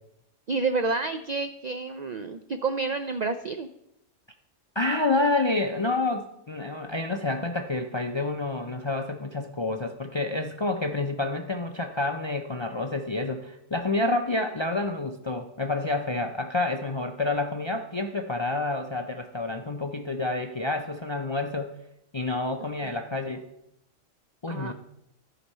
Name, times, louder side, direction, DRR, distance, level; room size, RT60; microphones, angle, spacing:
voice 1, 0.5-3.7 22.8-22.9 24.5-24.7, right 3 dB, 65° right, 9 dB, 0.4 m, -29 dB
voice 2, 4.8-21.7 22.1-23.4 24.4-24.7, left 2 dB, 40° left, 5 dB, 0.4 m, -28 dB
13.0 x 5.0 x 5.4 m, 0.82 s
omnidirectional pair, 1.3 m